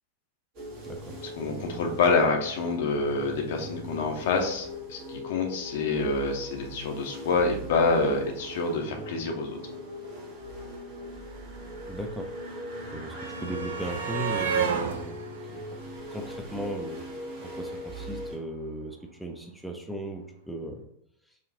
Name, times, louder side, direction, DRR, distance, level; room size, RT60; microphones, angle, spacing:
sound 1, 0.5-18.4, equal, 45° right, 1.2 m, -40 dB
voice 1, 0.8-1.2 11.9-12.3 12.9-15.2 15.5-15.6 16.1-17.0 17.4-20.8, right 1 dB, ahead, 2 dB, 0.6 m, -36 dB
voice 2, 1.4-9.6, left 3 dB, 55° left, 3 dB, 0.7 m, -27 dB
sound 2, 10.4-10.5 10.6-16.8 18.0-18.1 18.4-18.5, right 7 dB, 65° right, 0.6 m, -34 dB
5.1 x 2.4 x 3.7 m, 0.74 s
figure-of-eight pair, 90°, 0 cm